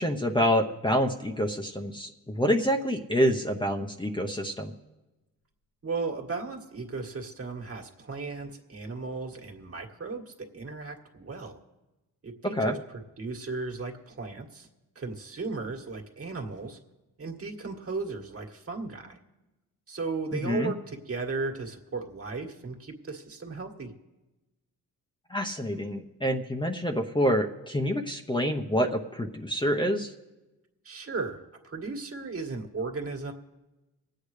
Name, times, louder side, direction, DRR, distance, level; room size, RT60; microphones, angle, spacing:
voice 1, 0.0-4.7 12.5-12.8 20.3-20.7 25.3-30.1, equal, 15° left, 3 dB, 1.0 m, -27 dB
voice 2, 5.8-11.6 12.2-14.7 15.0-16.8 17.2-19.2 19.9-23.9 30.8-33.3, right 4 dB, 40° right, 2 dB, 1.8 m, -36 dB
25.5 x 8.7 x 3.3 m, 1.0 s
supercardioid pair, 60°, 37 cm